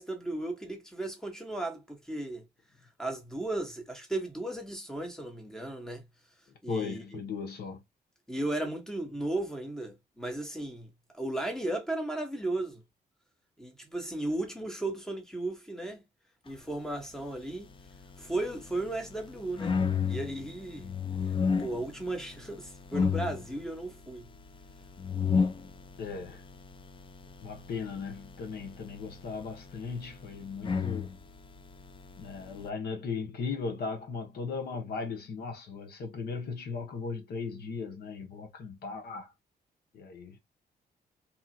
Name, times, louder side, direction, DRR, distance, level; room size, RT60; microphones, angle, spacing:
voice 1, 0.0-2.5 3.0-6.0 6.6-7.2 8.3-10.9 11.1-12.8 13.6-16.0 16.4-17.7 18.2-19.8 20.0-20.9 21.6-24.3, right 2 dB, 5° left, 1.1 m, -35 dB
voice 2, 6.7-7.8 26.0-26.4 27.4-31.1 32.2-39.3 39.9-40.4, left 5 dB, 75° left, 1.0 m, -37 dB
sound 1, 17.3-32.7, left 5 dB, 30° left, 0.4 m, -34 dB
2.9 x 2.4 x 2.6 m
cardioid pair, 95°, 17 cm